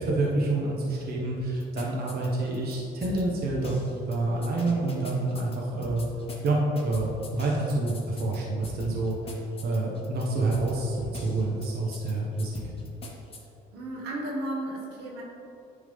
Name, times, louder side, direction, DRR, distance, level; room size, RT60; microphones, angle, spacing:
voice 1, 0.0-6.0 6.4-9.2 9.6-12.6, right 2 dB, 65° right, -3 dB, 1.2 m, -28 dB
sound 1, 1.4-2.7 3.0-3.2 3.5-4.2 4.4-5.6 5.8-6.5 6.8-8.4 8.6-10.2 10.5-10.7 11.0-11.7 11.9-12.1 12.4-13.4, left 3 dB, 35° left, 1.1 m, -42 dB
voice 2, 13.7-15.2, right 1 dB, 90° right, -3 dB, 1.3 m, -34 dB
9.8 x 3.6 x 3.6 m, 2.8 s
cardioid pair, 110°, 17 cm